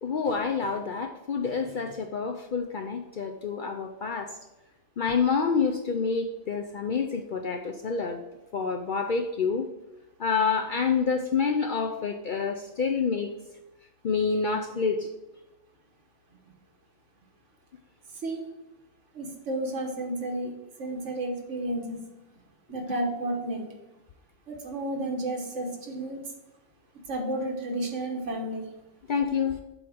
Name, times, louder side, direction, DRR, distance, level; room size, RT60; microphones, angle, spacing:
voice 1, 0.0-4.3 5.0-8.2 8.5-9.7 10.2-13.3 14.0-15.1 29.1-29.6, left 5 dB, 55° left, 4 dB, 0.5 m, -27 dB
voice 2, 18.1-18.5 19.1-20.5 20.8-22.0 22.7-23.7 24.5-26.3 27.1-28.7, right 1 dB, 70° right, 2 dB, 1.5 m, -32 dB
7.8 x 3.6 x 6.2 m, 0.98 s
omnidirectional pair, 1.3 m